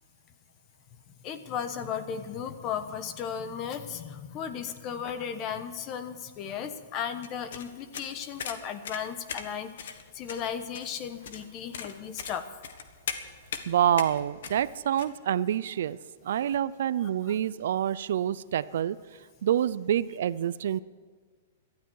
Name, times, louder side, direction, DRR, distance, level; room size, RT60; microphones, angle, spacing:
voice 1, 1.2-9.7 10.2-12.4 17.3-17.4, left 8 dB, 25° left, 10 dB, 1.0 m, -35 dB
sound 1, 7.2-15.1, left 7 dB, 70° left, 1.5 m, -40 dB
voice 2, 13.7-16.0 16.2-19.0 19.4-20.8, right 10 dB, 65° right, 18 dB, 0.5 m, -27 dB
18.5 x 12.5 x 4.7 m, 1.5 s
hypercardioid pair, 165°, 0 cm